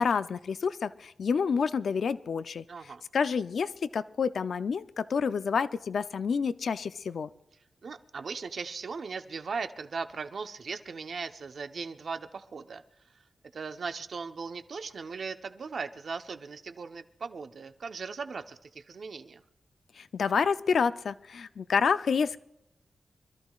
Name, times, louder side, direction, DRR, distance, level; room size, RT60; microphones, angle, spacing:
voice 1, 0.0-2.6 3.1-7.3 20.0-22.4, left 6 dB, 70° left, 13 dB, 0.5 m, -28 dB
voice 2, 2.7-3.0 7.8-12.8 13.5-19.4, right 5 dB, 60° right, 8 dB, 0.9 m, -38 dB
26.0 x 13.5 x 2.4 m, 0.82 s
wide cardioid pair, 140°, 0 cm